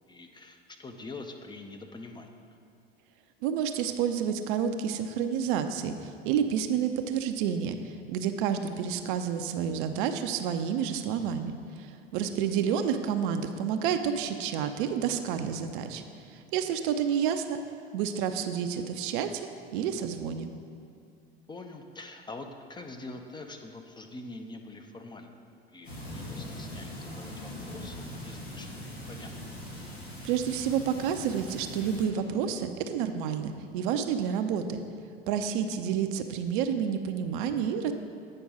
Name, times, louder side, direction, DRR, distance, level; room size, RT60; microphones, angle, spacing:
voice 1, 0.1-2.3 12.1-12.6 21.5-25.4 25.7-29.3, left 2 dB, 15° left, 5 dB, 0.6 m, -45 dB
voice 2, 3.4-16.0 16.3-17.6 17.9-20.5 30.2-34.8 35.3-37.9, right 8 dB, 55° right, 8 dB, 0.6 m, -29 dB
sound 1, 25.8-32.0, left 1 dB, 85° left, 1.7 m, -41 dB
8.6 x 5.2 x 4.8 m, 2.4 s
figure-of-eight pair, 70°, 31 cm